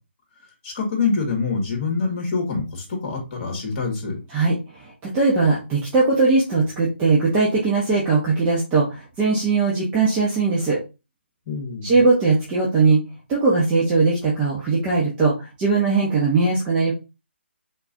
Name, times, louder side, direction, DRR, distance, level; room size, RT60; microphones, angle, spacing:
voice 1, 0.6-4.2 11.5-11.9, left 4 dB, 35° left, 0 dB, 2.4 m, -25 dB
voice 2, 4.3-10.8 11.8-13.0 13.3-16.9, right 3 dB, 20° right, -6 dB, 1.2 m, -20 dB
4.4 x 3.8 x 2.8 m, 0.28 s
figure-of-eight pair, 150°, 7 cm